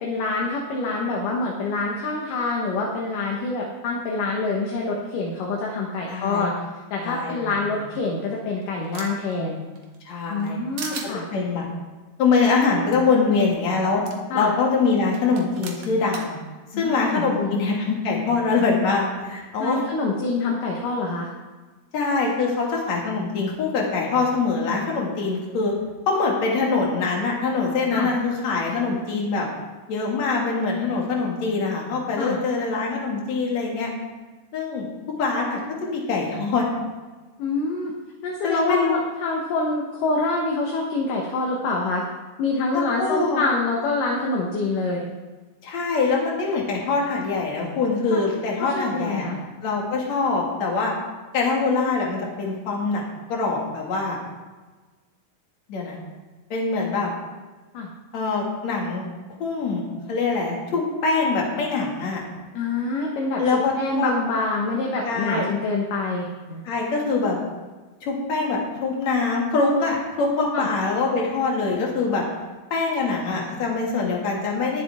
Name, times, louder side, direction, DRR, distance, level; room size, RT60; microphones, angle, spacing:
voice 1, 0.0-6.5 6.9-9.6 10.3-11.2 14.3-14.5 16.7-17.6 19.6-21.3 27.9-28.1 32.2-32.4 37.4-37.9 38.2-42.1 42.4-45.1 48.1-48.2 48.7-49.4 57.7-57.9 62.5-66.6 70.5-70.7, left 3 dB, 65° left, -1 dB, 2.7 m, -26 dB
voice 2, 6.1-6.5 7.0-7.5 10.0-10.6 11.3-11.7 12.2-14.0 14.3-16.4 16.8-19.8 21.9-25.7 26.1-29.5 29.9-33.9 34.5-34.9 35.2-36.7 38.4-39.0 42.7-43.4 45.6-49.3 49.6-50.9 51.3-53.0 53.3-54.2 55.7-56.0 56.5-57.1 58.1-59.1 59.4-62.2 63.4-64.1 65.0-65.5 66.6-67.4 68.0-72.2 72.7-74.8, left 4 dB, 50° left, -2 dB, 3.3 m, -23 dB
sound 1, 8.0-9.3 9.8-10.5 10.8-11.1 12.6-12.7 12.9-13.0 14.1-14.2 15.1-16.3, right 5 dB, 60° right, 2.5 m, -37 dB
20.5 x 7.4 x 3.6 m, 1.3 s
omnidirectional pair, 4.3 m